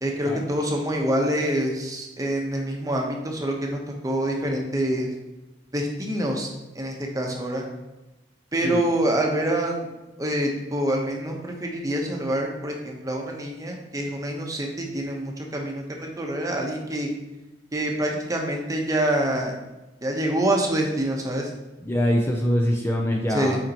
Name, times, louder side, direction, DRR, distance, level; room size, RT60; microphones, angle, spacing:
voice 1, 0.0-5.1 5.7-6.5 6.7-7.6 8.5-9.9 10.2-17.1 17.7-19.5 20.0-21.5 23.3-23.6, right 1 dB, 20° right, 1 dB, 0.9 m, -26 dB
voice 2, 21.8-23.6, equal, 15° left, 0 dB, 0.5 m, -23 dB
9.0 x 4.4 x 2.9 m, 1.0 s
head